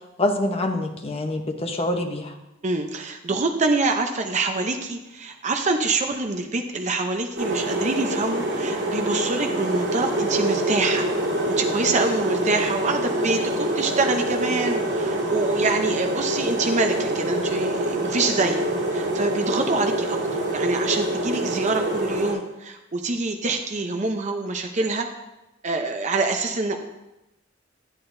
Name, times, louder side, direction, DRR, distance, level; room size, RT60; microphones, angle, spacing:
voice 1, 0.2-2.3, left 1 dB, 30° left, 4 dB, 1.0 m, -25 dB
voice 2, 2.6-11.1 11.6-18.6 18.9-20.2 20.5-25.1 25.6-26.8, right 3 dB, 40° right, 4 dB, 0.7 m, -25 dB
sound 1, 7.4-22.3, right 1 dB, 65° right, 3.3 m, -25 dB
11.5 x 8.7 x 2.7 m, 0.95 s
head